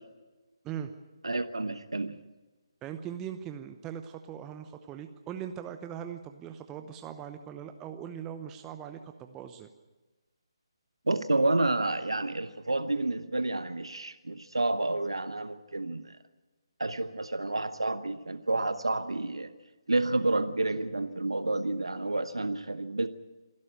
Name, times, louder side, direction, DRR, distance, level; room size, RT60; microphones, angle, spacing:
voice 1, 1.2-2.2 11.1-16.2 16.8-19.5 19.9-23.1, right 2 dB, 80° right, 12 dB, 1.0 m, -29 dB
voice 2, 2.8-9.7, right 9 dB, 15° right, 7 dB, 0.8 m, -40 dB
26.5 x 12.0 x 9.1 m, 1.2 s
figure-of-eight pair, 145°, 3 cm